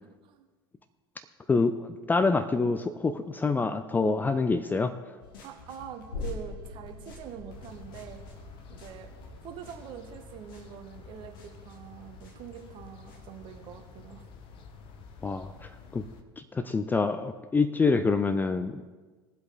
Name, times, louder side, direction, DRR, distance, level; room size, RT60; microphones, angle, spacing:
voice 1, 1.5-4.9 15.2-16.0 16.4-18.8, left 4 dB, 15° left, 10 dB, 0.5 m, -26 dB
sound 1, 5.2-13.8, left 3 dB, 65° left, 2.1 m, -54 dB
voice 2, 5.4-8.2 8.7-9.1 9.4-14.2, right 8 dB, 40° right, 6 dB, 1.4 m, -44 dB
sound 2, 6.1-13.4 13.8-13.9, left 4 dB, 85° left, 2.9 m, -44 dB
sound 3, 7.5-16.2, left 5 dB, 45° left, 1.1 m, -50 dB
20.5 x 7.8 x 3.9 m, 1.3 s
figure-of-eight pair, 75°, 13 cm